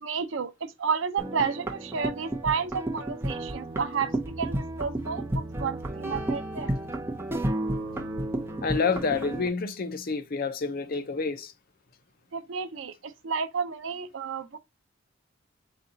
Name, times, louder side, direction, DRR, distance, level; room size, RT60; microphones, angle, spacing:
voice 1, 0.0-6.8 12.3-14.6, right 6 dB, 80° right, 0.5 m, -31 dB
sound 1, 1.2-9.5, right 1 dB, 10° right, 0.7 m, -32 dB
voice 2, 8.6-11.5, left 4 dB, 50° left, 0.5 m, -28 dB
4.1 x 2.4 x 3.8 m
head